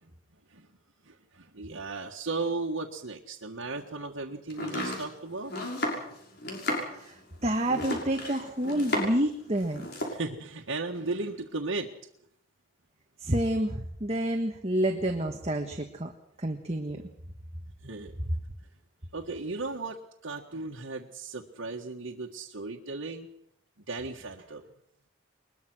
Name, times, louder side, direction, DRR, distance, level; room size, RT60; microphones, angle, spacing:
voice 1, 1.0-5.5 10.1-11.9 17.8-18.1 19.1-23.3 23.8-24.7, right 3 dB, 80° right, 0 dB, 1.7 m, -36 dB
Domestic sounds home sounds, 4.5-9.3 9.6-10.2, left 1 dB, 50° left, 6.4 m, -33 dB
voice 2, 6.9-9.9 13.2-16.1 16.4-17.0, right 1 dB, 30° right, 3 dB, 1.6 m, -29 dB
22.5 x 21.0 x 6.3 m, 0.71 s
head